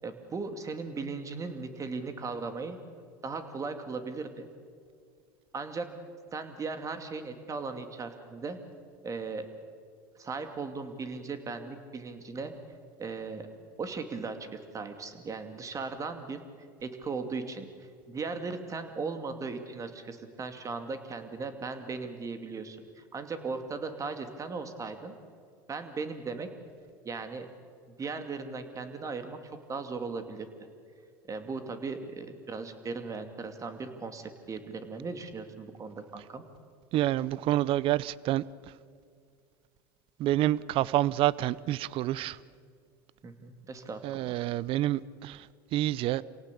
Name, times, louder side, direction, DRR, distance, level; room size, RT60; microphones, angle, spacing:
voice 1, 0.0-2.8 3.2-4.5 5.5-5.9 6.3-8.6 9.0-9.5 10.2-12.5 13.0-13.5 13.8-16.4 16.8-25.1 25.7-26.5 27.0-27.5 28.0-30.5 31.3-36.4 43.2-44.4, right 4 dB, 30° right, 2.5 m, -37 dB
voice 2, 36.9-38.4 40.2-42.4 44.0-46.2, right 14 dB, 50° right, 0.6 m, -28 dB
27.5 x 17.5 x 8.5 m
supercardioid pair, 95°, 11 cm